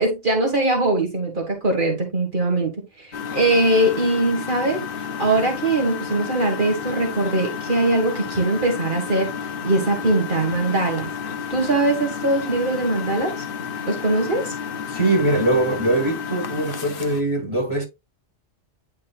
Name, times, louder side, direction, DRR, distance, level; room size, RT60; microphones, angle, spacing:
voice 1, 0.0-9.3 9.6-11.1 11.5-13.4 13.9-14.5, right 2 dB, 45° right, 1.9 m, -21 dB
Engine, 3.1-17.2, left 7 dB, 55° left, 1.0 m, -31 dB
voice 2, 14.9-17.8, right 2 dB, 25° left, 5.4 m, -22 dB
9.8 x 5.4 x 2.4 m
omnidirectional pair, 1.2 m